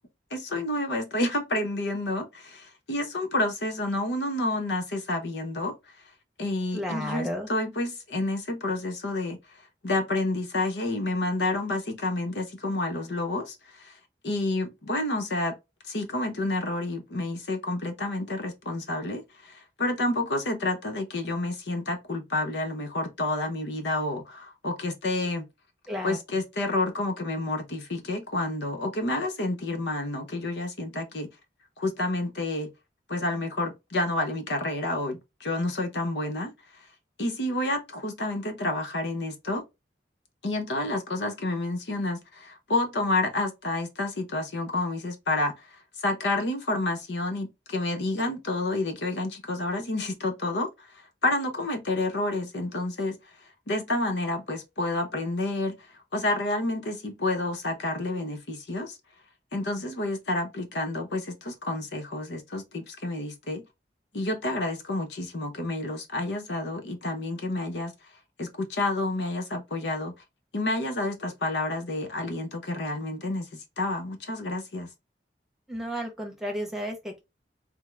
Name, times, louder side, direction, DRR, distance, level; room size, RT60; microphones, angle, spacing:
voice 1, 0.3-5.7 6.4-9.4 9.8-13.9 14.2-15.6 15.9-25.5 26.0-31.3 31.8-32.7 33.1-36.5 37.2-39.6 40.4-45.5 46.0-50.7 51.2-53.2 53.7-55.8 56.1-59.0 59.5-63.7 64.1-67.9 68.4-70.1 70.5-74.9, left 2 dB, 85° left, 0.9 m, -29 dB
voice 2, 6.7-7.5 25.9-26.2 75.7-77.2, equal, ahead, 0.8 m, -32 dB
3.6 x 2.0 x 3.2 m
head